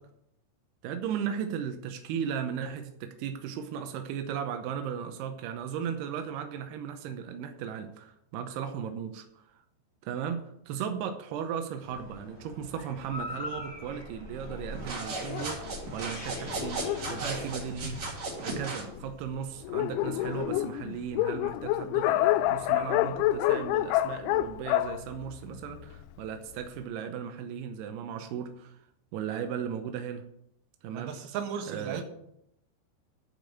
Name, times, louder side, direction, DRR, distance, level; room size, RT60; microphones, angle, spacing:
voice 1, 0.8-9.4 10.0-18.0 18.4-28.8 29.1-30.2 30.8-31.2 31.7-32.0, right 8 dB, 85° right, 7 dB, 2.3 m, -36 dB
sound 1, 11.8-17.7, left 2 dB, 30° left, 0.8 m, -43 dB
sound 2, 14.7-18.9, right 2 dB, 40° right, 3.1 m, -36 dB
Dog, 15.3-18.3 19.0-19.1 19.3-19.4 19.6-26.0, left 14 dB, 85° left, 2.7 m, -28 dB
voice 2, 30.9-32.1, right 7 dB, 65° right, 4 dB, 2.6 m, -35 dB
11.5 x 4.9 x 8.2 m, 0.77 s
omnidirectional pair, 5.8 m